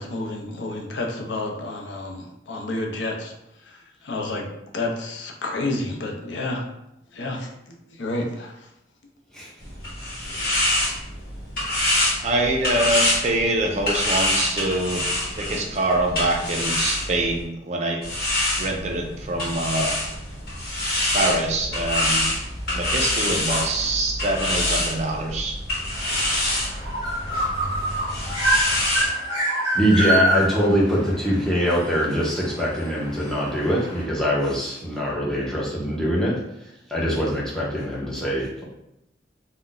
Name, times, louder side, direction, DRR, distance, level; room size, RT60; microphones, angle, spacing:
voice 1, 0.0-3.3 3.7-3.8 4.0-6.6 7.1-8.5, left 2 dB, 80° left, 1 dB, 0.5 m, -30 dB
sound 1, 9.6-17.4 18.0-29.1, left 1 dB, 55° left, 1.1 m, -26 dB
voice 2, 12.2-15.1 15.4-18.0 18.6-20.0 21.1-22.3 22.7-25.5, right 2 dB, 35° right, 1 dB, 0.4 m, -25 dB
sound 2, 25.9-34.0, right 1 dB, 35° left, 0.8 m, -26 dB
voice 3, 29.7-36.3 36.9-38.6, equal, 5° left, -6 dB, 0.6 m, -23 dB
2.4 x 2.1 x 3.8 m, 0.84 s
head